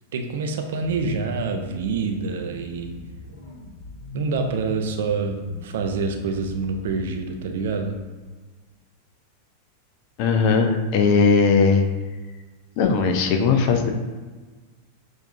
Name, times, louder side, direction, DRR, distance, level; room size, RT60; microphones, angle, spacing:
voice 1, 0.1-2.9 4.1-8.0, right 4 dB, 60° right, 5 dB, 0.4 m, -26 dB
sound 1, 0.8-7.9, left 1 dB, 60° left, 0.9 m, -42 dB
voice 2, 10.2-11.8 12.8-13.9, left 5 dB, 45° left, 5 dB, 0.5 m, -18 dB
6.4 x 2.6 x 2.6 m, 1.3 s
figure-of-eight pair, 90°, 0 cm